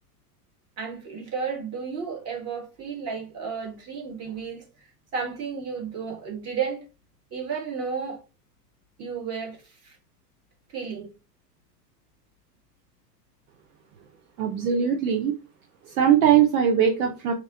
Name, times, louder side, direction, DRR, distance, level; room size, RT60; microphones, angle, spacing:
voice 1, 0.8-4.6 5.1-6.8 7.3-8.2 9.0-10.0 10.7-11.1, right 6 dB, 30° right, 2.0 m, -32 dB
voice 2, 14.4-15.3 15.9-17.3, right 8 dB, 60° right, 0.9 m, -20 dB
4.5 x 3.0 x 3.8 m
hypercardioid pair, 125°, 49 cm